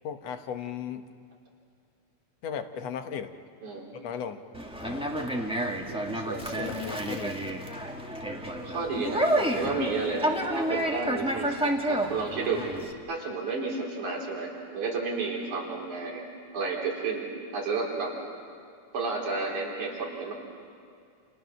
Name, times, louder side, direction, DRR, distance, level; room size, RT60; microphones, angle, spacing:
voice 1, 0.0-1.0 2.4-3.3 4.0-4.4 4.8-5.1 6.6-7.4, left 8 dB, 60° left, 7 dB, 2.1 m, -36 dB
Conversation, 4.5-12.9, right 1 dB, 5° right, 1.0 m, -30 dB
voice 2, 5.9-6.7 8.6-12.7 13.1-16.2 16.5-17.3 17.5-18.1 18.9-20.3, right 4 dB, 70° right, -2 dB, 5.3 m, -32 dB
30.0 x 29.5 x 6.4 m, 2.4 s
omnidirectional pair, 3.6 m